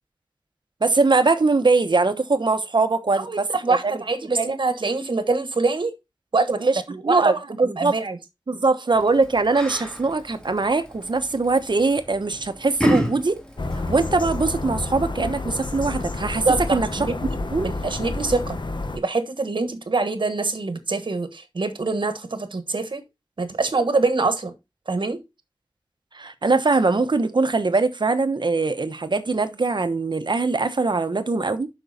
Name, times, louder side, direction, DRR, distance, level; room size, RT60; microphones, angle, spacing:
voice 1, 0.8-3.8 4.4-4.6 6.6-7.3 7.6-7.9 8.5-13.4 13.7-16.5 16.7-16.9 17.5-17.7 26.1-31.7, right 3 dB, 70° right, 1.0 m, -22 dB
voice 2, 3.2-5.9 6.3-8.2 16.4-18.6 18.9-23.0 23.4-24.5 24.9-25.2, right 3 dB, 90° right, 1.3 m, -25 dB
Yell, 8.9-14.4, equal, 10° left, 2.3 m, -30 dB
sound 1, 13.6-19.0, left 2 dB, 75° left, 1.2 m, -29 dB
7.7 x 6.1 x 4.1 m
wide cardioid pair, 55°, 8 cm